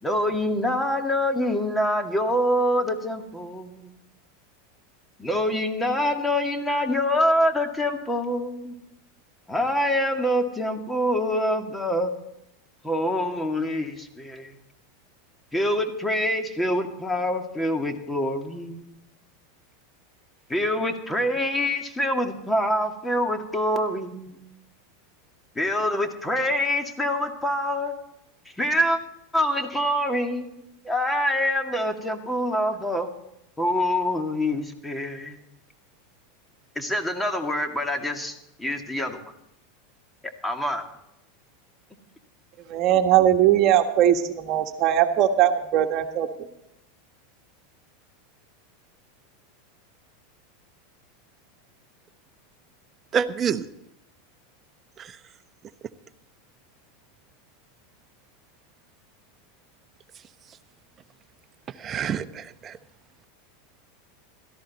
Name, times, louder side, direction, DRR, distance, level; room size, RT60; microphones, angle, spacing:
voice 1, 0.0-4.0 5.2-8.7 9.5-12.1 12.8-14.6 15.5-18.9 20.5-24.4 25.6-27.9 28.6-29.0 29.3-33.1 33.6-35.4 36.8-39.3 40.4-40.8, left 1 dB, 10° left, 5 dB, 2.2 m, -25 dB
voice 2, 42.7-46.3, right 11 dB, 50° right, 6 dB, 1.4 m, -20 dB
voice 3, 53.1-53.7 55.0-55.2 61.8-62.8, right 7 dB, 30° right, 11 dB, 1.0 m, -27 dB
17.0 x 14.0 x 4.2 m, 0.82 s
hypercardioid pair, 100°, 0 cm